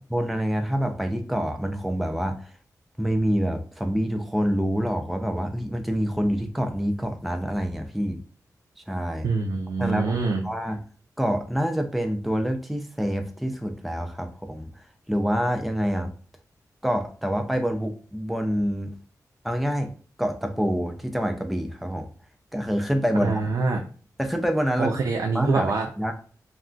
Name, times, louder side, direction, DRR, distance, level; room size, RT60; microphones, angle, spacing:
voice 1, 0.1-2.5 3.0-8.2 8.9-9.3 9.8-10.8 11.2-16.1 16.8-18.9 19.4-19.9 20.2-22.1 22.5-23.3 24.2-25.0 25.3-26.1, equal, ahead, 0.3 m, -26 dB
voice 2, 9.2-10.4 23.2-23.8 24.8-25.9, right 4 dB, 90° right, 0.4 m, -25 dB
2.3 x 2.2 x 3.7 m
wide cardioid pair, 175°, 7 cm